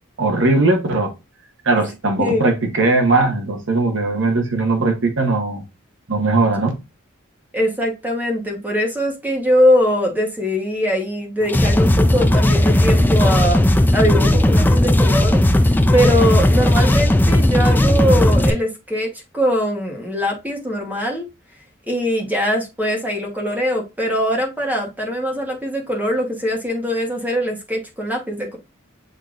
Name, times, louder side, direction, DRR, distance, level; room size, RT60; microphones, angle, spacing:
voice 1, 0.2-1.1 1.6-5.6 6.1-6.7, right 2 dB, 65° right, 1.2 m, -19 dB
voice 2, 7.5-15.4 15.9-21.3 21.9-28.6, equal, 10° right, 1.1 m, -21 dB
sound 1, 11.5-18.5, left 1 dB, 10° left, 0.3 m, -15 dB
7.8 x 2.7 x 2.4 m
head